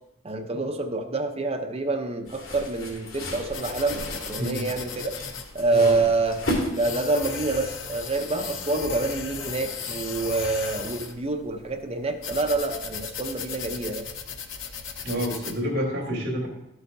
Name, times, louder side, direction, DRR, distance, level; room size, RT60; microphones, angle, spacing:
voice 1, 0.2-5.1 5.5-6.4 6.7-14.1, right 3 dB, 30° right, 5 dB, 0.7 m, -27 dB
sound 1, 2.3-7.2, left 1 dB, 85° left, 2.4 m, -34 dB
sound 2, 3.5-15.6, left 6 dB, 65° left, 0.8 m, -36 dB
voice 2, 15.0-16.5, equal, 60° right, -2 dB, 2.9 m, -28 dB
12.5 x 8.1 x 2.7 m, 0.85 s
head